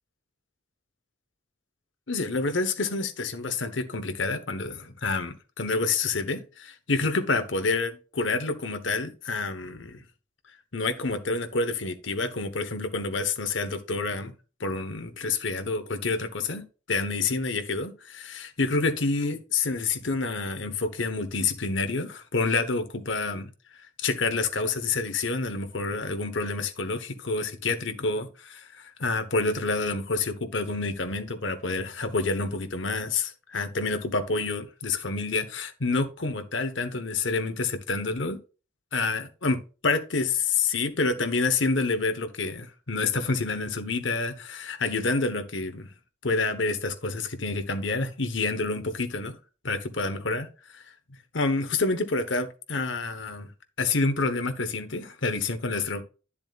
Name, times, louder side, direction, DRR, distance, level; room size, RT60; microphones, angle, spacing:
voice 1, 2.1-10.0 10.7-14.3 14.6-23.5 23.8-38.4 38.9-45.9 46.2-49.4 49.6-50.8 51.3-53.5 53.8-56.0, left 3 dB, 75° left, 1.2 m, -28 dB
10.5 x 7.2 x 2.4 m
head